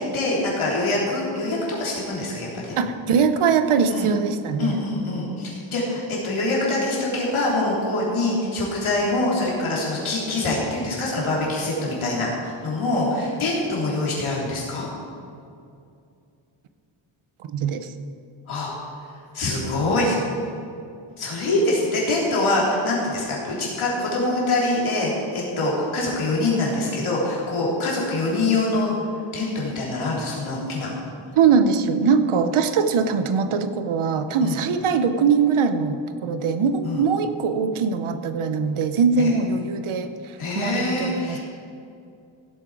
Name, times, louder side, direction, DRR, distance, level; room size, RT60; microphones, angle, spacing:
voice 1, 0.1-2.8 3.9-4.1 4.6-14.9 18.5-18.7 19.3-20.1 21.2-28.9 29.3-30.9 34.4-34.6 36.8-37.0 39.2-39.3 40.4-41.4, left 2 dB, 75° left, -4 dB, 3.5 m, -24 dB
voice 2, 2.8-4.8 17.5-17.9 31.4-41.4, right 5 dB, 80° right, 9 dB, 0.9 m, -22 dB
16.5 x 7.9 x 4.8 m, 2.5 s
wide cardioid pair, 145°, 49 cm